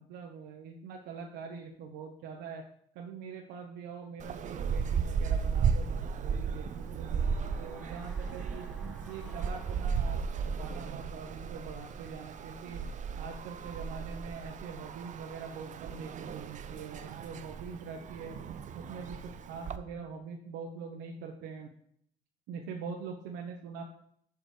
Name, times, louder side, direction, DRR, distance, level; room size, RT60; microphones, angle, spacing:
voice 1, 0.0-2.6 2.9-8.7 9.0-12.8 13.2-18.4 18.7-21.7 22.5-23.8, right 5 dB, 90° right, 1 dB, 1.0 m, -43 dB
sound 1, 4.2-19.8, right 6 dB, 45° right, 0.6 m, -35 dB
sound 2, 5.7-10.8 11.1-11.2, equal, ahead, 1.1 m, -56 dB
6.8 x 4.9 x 4.9 m, 0.67 s
cardioid pair, 110°, 17 cm